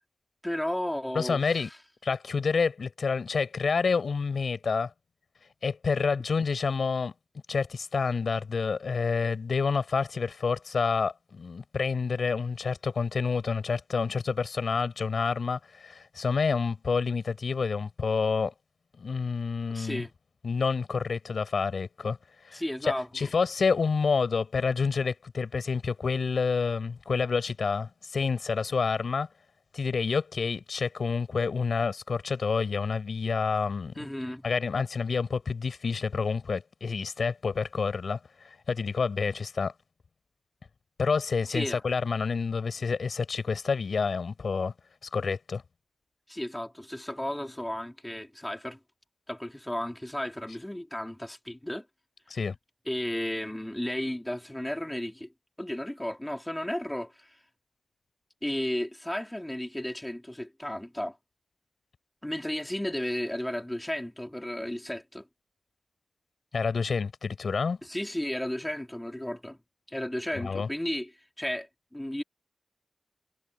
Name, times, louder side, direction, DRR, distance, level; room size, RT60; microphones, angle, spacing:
voice 1, 0.4-1.7 19.7-20.1 22.5-23.3 33.9-34.4 41.5-41.8 46.3-48.8 49.3-51.9 52.9-55.3 55.6-57.4 58.4-61.2 62.2-65.3 67.8-69.6 69.9-72.2, left 1 dB, 10° left, 3.2 m, -34 dB
voice 2, 1.1-1.7 2.0-4.9 5.6-7.1 7.5-18.5 19.0-20.0 20.4-22.2 22.4-29.3 29.7-33.9 34.4-38.2 38.7-39.7 41.0-44.7 45.1-45.6 52.3-52.5 66.5-67.8 70.3-70.7, left 5 dB, 85° left, 4.2 m, -28 dB
wide cardioid pair, 95°, 0 cm